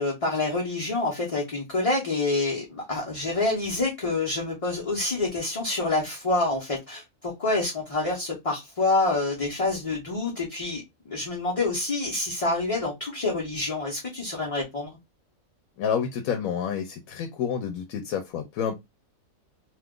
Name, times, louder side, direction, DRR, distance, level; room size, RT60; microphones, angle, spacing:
voice 1, 0.0-14.9, left 2 dB, 30° left, 0.7 m, -27 dB
voice 2, 15.8-18.8, left 7 dB, 85° left, 1.0 m, -29 dB
2.8 x 2.3 x 3.6 m
omnidirectional pair, 1.4 m